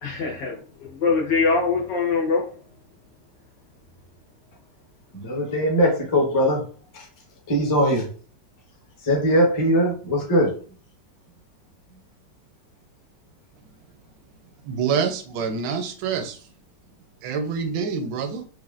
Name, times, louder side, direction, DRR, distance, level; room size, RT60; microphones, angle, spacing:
voice 1, 0.0-2.5, left 4 dB, 75° left, -2 dB, 1.9 m, -23 dB
voice 2, 5.1-6.6 7.5-8.1 9.0-10.5, equal, 15° left, -2 dB, 0.7 m, -20 dB
voice 3, 14.6-16.5 17.2-18.5, right 6 dB, 80° right, 6 dB, 1.3 m, -26 dB
4.9 x 2.5 x 2.5 m, 0.41 s
omnidirectional pair, 1.9 m